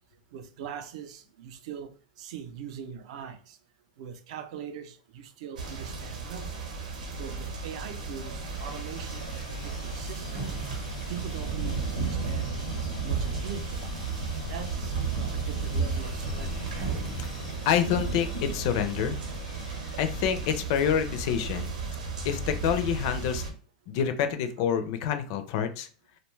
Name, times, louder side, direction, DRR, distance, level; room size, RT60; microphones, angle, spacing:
voice 1, 0.3-1.9 2.2-3.6 4.0-6.6 7.2-10.5 11.1-12.5 13.0-13.9 14.5-16.6, right 8 dB, 60° right, 0.4 m, -42 dB
sound 1, 5.6-23.5, right 4 dB, 85° right, 0.8 m, -33 dB
Sawing, 8.5-20.9, left 4 dB, 90° left, 0.8 m, -50 dB
sound 2, 9.0-14.0 14.6-15.3 15.6-15.7 16.0-19.9 20.3-20.9, right 2 dB, 30° right, 0.8 m, -43 dB
voice 2, 17.7-19.2 20.0-21.7 22.2-23.4 23.9-25.9, left 8 dB, 45° left, 0.4 m, -27 dB
2.5 x 2.2 x 3.1 m
supercardioid pair, 155°, 4 cm